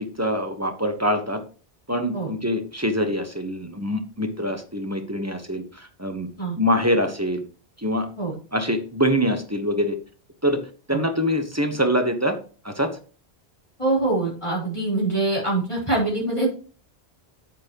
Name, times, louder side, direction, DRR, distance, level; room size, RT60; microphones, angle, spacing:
voice 1, 0.0-1.4 1.9-6.3 6.5-7.4 7.8-8.1 8.5-10.0 10.4-10.6 10.9-12.4 12.6-12.9, equal, 15° right, 6 dB, 1.2 m, -24 dB
voice 2, 13.8-16.5, right 2 dB, 30° left, -5 dB, 4.1 m, -24 dB
9.1 x 8.4 x 3.0 m, 0.38 s
omnidirectional pair, 1.1 m